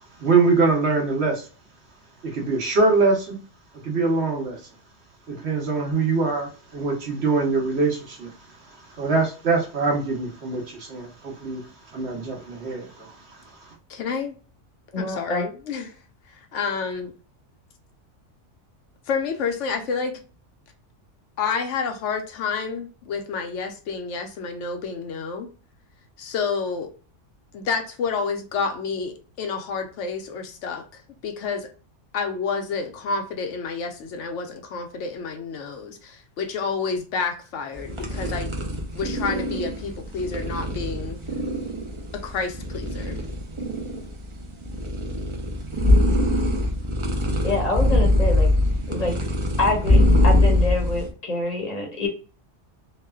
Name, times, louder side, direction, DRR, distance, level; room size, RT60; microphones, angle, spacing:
voice 1, 0.2-1.5 2.2-3.4 3.8-4.6 5.3-8.3 8.9-11.6 11.9-13.4, right 4 dB, 60° right, 1.1 m, -23 dB
voice 2, 13.9-14.3 15.0-15.9 16.5-17.1 19.1-20.2 21.4-25.5 26.2-26.9 27.5-31.7 32.1-38.5 38.9-41.2 42.1-43.2, left 5 dB, 80° left, 0.9 m, -29 dB
voice 3, 14.9-15.5 47.4-48.5 48.9-49.1 49.6-52.1, left 2 dB, 40° left, 0.7 m, -26 dB
sound 1, 37.7-51.1, left 1 dB, 45° right, 0.4 m, -22 dB
3.1 x 2.1 x 2.2 m
omnidirectional pair, 1.3 m